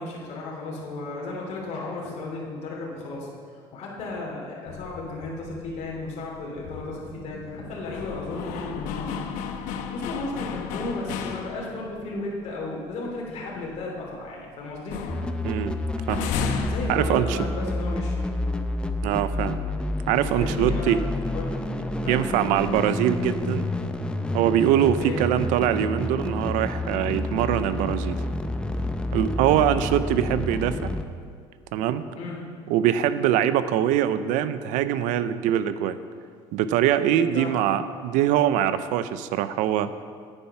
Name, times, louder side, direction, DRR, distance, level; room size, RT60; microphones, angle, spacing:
voice 1, 0.0-3.3 3.7-9.2 9.5-9.6 9.9-15.0 16.6-18.2 20.3-21.0 21.3-21.6 22.0-22.3 25.0-25.2 32.2-32.4 37.3-37.6, left 2 dB, 60° left, -4 dB, 2.8 m, -34 dB
sound 1, 4.7-12.0 12.4-12.5 12.9-14.5 14.7-17.8, left 6 dB, 90° left, 0.9 m, -35 dB
sound 2, 15.1-31.0, left 1 dB, 5° left, 0.6 m, -29 dB
voice 2, 15.4-15.8 16.1-16.3 16.9-17.4 19.0-19.6 20.1-21.0 22.1-23.7 24.3-28.2 29.1-30.9 31.7-32.0 32.7-36.0 36.5-39.9, right 10 dB, 85° right, 13 dB, 0.6 m, -23 dB
9.9 x 9.0 x 5.9 m, 2.1 s
cardioid pair, 120°, 13 cm